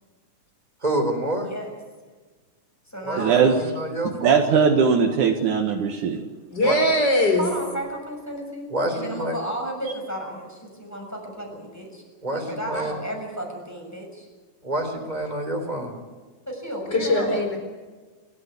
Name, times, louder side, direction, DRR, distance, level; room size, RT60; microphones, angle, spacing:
voice 1, 0.8-1.5 3.0-3.2 3.5-4.5 6.6-6.8 8.7-9.3 12.2-13.0 14.6-15.9, right 1 dB, 10° right, 4 dB, 4.1 m, -27 dB
voice 2, 1.4-1.8 2.9-3.6 7.4-12.0 12.5-14.3 16.5-17.4, right 1 dB, 5° left, 1 dB, 6.5 m, -33 dB
voice 3, 3.2-3.6 4.0-6.2, right 6 dB, 70° right, 3 dB, 3.0 m, -20 dB
voice 4, 6.5-7.4 16.9-17.6, left 1 dB, 30° left, 4 dB, 5.1 m, -20 dB
28.5 x 14.5 x 8.4 m, 1.3 s
omnidirectional pair, 3.6 m